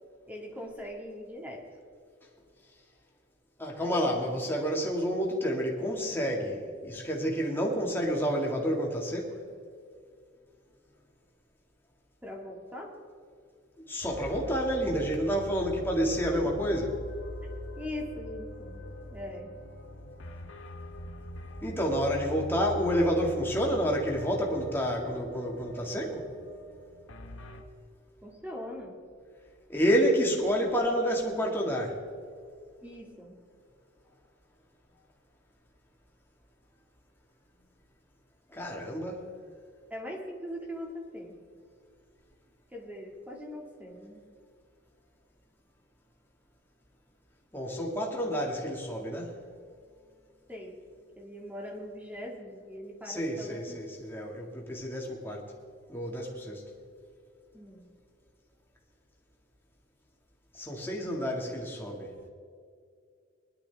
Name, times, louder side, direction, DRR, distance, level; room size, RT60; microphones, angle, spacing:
voice 1, 0.3-1.6 12.2-12.9 16.3-16.4 17.8-18.8 19.1-19.5 28.2-29.0 32.8-33.4 39.9-41.3 42.7-44.2 50.5-50.8 51.2-53.8 57.5-57.9, left 1 dB, 10° right, 0 dB, 2.1 m, -41 dB
voice 2, 3.6-9.4 13.9-17.0 21.6-26.2 29.7-32.0 38.5-39.3 47.5-49.3 53.1-55.4 55.9-56.6 60.5-62.1, equal, 10° left, -2 dB, 2.0 m, -29 dB
sound 1, 14.0-27.6, equal, 75° left, 1.2 m, -42 dB
20.5 x 11.5 x 3.5 m, 2.2 s
head